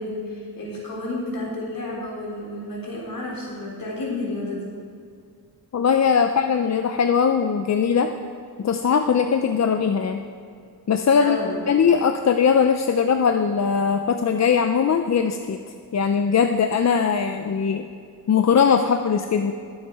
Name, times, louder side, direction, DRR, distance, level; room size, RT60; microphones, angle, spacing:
voice 1, 0.0-4.7 11.2-11.6, left 2 dB, 65° left, -4 dB, 3.9 m, -31 dB
voice 2, 5.7-8.1 8.6-10.2 10.9-11.4 11.7-15.6 15.9-17.9 18.3-19.5, left 6 dB, 45° left, 7 dB, 0.5 m, -20 dB
21.5 x 7.3 x 4.7 m, 2.3 s
wide cardioid pair, 180°, 37 cm